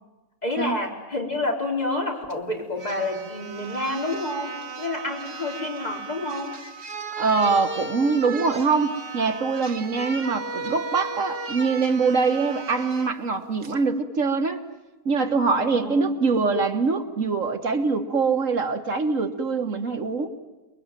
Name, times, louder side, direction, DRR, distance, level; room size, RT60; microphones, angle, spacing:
voice 1, 0.4-6.6 15.6-16.1, left 2 dB, 30° left, -1 dB, 4.5 m, -29 dB
sound 1, 2.3-2.4 2.8-13.1 13.6-13.8, right 4 dB, 45° right, 1.5 m, -36 dB
voice 2, 7.2-14.6 15.1-20.3, right 4 dB, 65° right, 6 dB, 1.8 m, -23 dB
29.0 x 22.0 x 9.1 m, 1.1 s
omnidirectional pair, 1.4 m